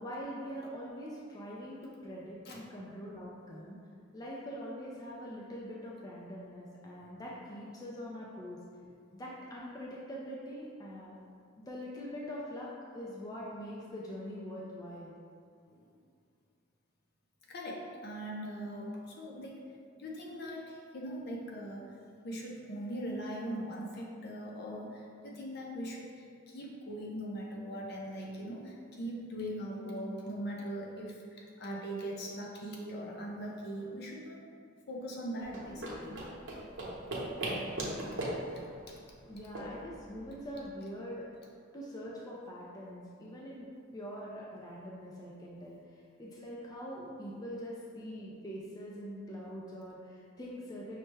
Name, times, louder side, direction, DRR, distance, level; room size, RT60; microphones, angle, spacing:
voice 1, 0.0-3.8 4.1-8.6 9.1-11.2 11.7-15.1 37.4-37.8 39.2-41.3 41.7-43.7 43.9-51.0, equal, 20° left, -5 dB, 0.4 m, -43 dB
voice 2, 17.5-19.7 20.0-22.0 22.2-34.4 34.9-36.2 38.1-38.2 38.9-39.0, equal, 55° left, -2 dB, 0.7 m, -41 dB
sound 1, 35.4-40.6, right 1 dB, 65° right, 0.8 m, -39 dB
5.7 x 2.1 x 3.2 m, 2.2 s
head